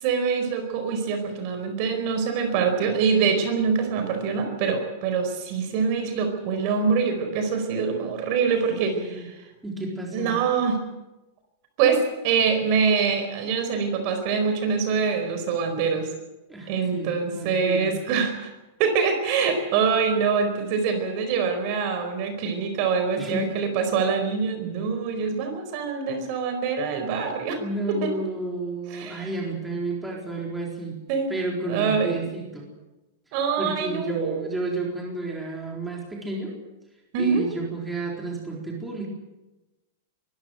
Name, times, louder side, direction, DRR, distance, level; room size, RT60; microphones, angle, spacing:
voice 1, 0.0-9.3 10.1-10.8 11.8-16.1 16.7-18.5 18.8-27.6 27.9-28.2 28.9-29.3 31.1-31.3 31.7-32.3 33.3-34.5 37.1-37.4, right 5 dB, 40° right, 7 dB, 4.5 m, -24 dB
voice 2, 8.5-9.3 9.6-10.4 16.5-18.0 23.2-23.5 27.6-31.0 31.3-32.7 33.6-36.6 37.2-39.1, right 2 dB, 5° right, -1 dB, 4.1 m, -31 dB
23.0 x 14.5 x 9.3 m, 1.0 s
supercardioid pair, 160°, 0 cm